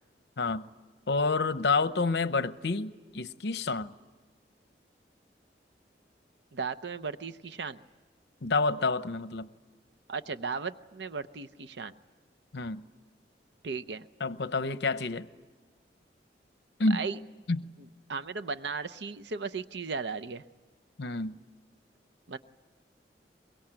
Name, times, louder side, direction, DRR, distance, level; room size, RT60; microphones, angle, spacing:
voice 1, 0.4-0.7 1.1-3.9 8.4-9.5 12.5-12.8 14.2-15.3 16.8-17.0 17.5-17.6 21.0-21.4, left 3 dB, 75° left, 0.8 m, -28 dB
voice 2, 6.5-7.8 10.1-11.9 13.6-14.0 16.9-17.2 18.1-20.4 22.3-22.4, right 5 dB, 85° right, 0.7 m, -36 dB
23.5 x 22.5 x 8.8 m
head